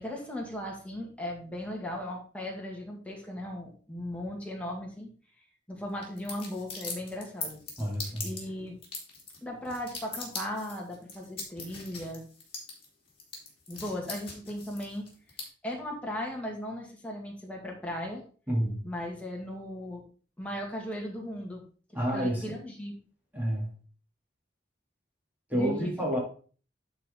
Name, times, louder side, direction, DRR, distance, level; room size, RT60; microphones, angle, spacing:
voice 1, 0.0-5.1 5.7-7.6 8.2-8.8 9.4-12.3 13.7-15.1 15.6-18.2 18.8-20.0 20.4-21.6 22.1-23.0 25.5-25.9, left 1 dB, 10° left, 2.1 m, -37 dB
sound 1, 6.0-15.4, left 4 dB, 30° left, 3.0 m, -41 dB
voice 2, 7.8-8.3 18.5-18.8 21.9-22.5 23.3-23.7 25.5-26.2, equal, 10° right, 2.7 m, -29 dB
11.0 x 4.7 x 3.8 m
head